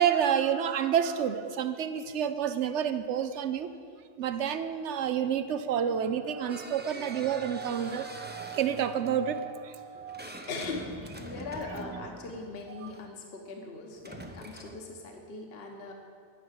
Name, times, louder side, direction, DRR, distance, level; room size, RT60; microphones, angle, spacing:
voice 1, 0.0-3.7 4.2-10.2 12.8-12.9, right 8 dB, 80° right, 1.0 m, -29 dB
sound 1, 6.5-13.1 13.9-14.9, right 1 dB, 10° right, 0.6 m, -45 dB
voice 2, 10.5-15.9, left 3 dB, 60° left, 1.2 m, -40 dB
11.0 x 6.1 x 8.1 m
omnidirectional pair, 1.2 m